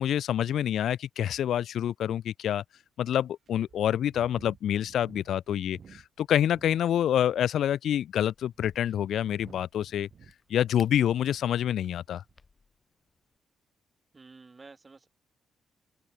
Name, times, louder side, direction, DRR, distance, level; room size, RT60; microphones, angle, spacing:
voice 1, 0.0-2.6 3.0-10.1 10.5-12.2, left 10 dB, 65° left, 0.4 m, -27 dB
sound 1, 1.3-1.4 2.0-2.1 2.7-2.8 3.5-6.8 7.1-7.6 8.3-11.8 12.1-12.4, right 7 dB, 40° right, 2.8 m, -54 dB
Crack, 8.3-13.4, left 4 dB, 25° left, 7.7 m, -61 dB
voice 2, 14.1-15.1, right 3 dB, 20° right, 6.0 m, -51 dB
open air
cardioid pair, 160°, 0 cm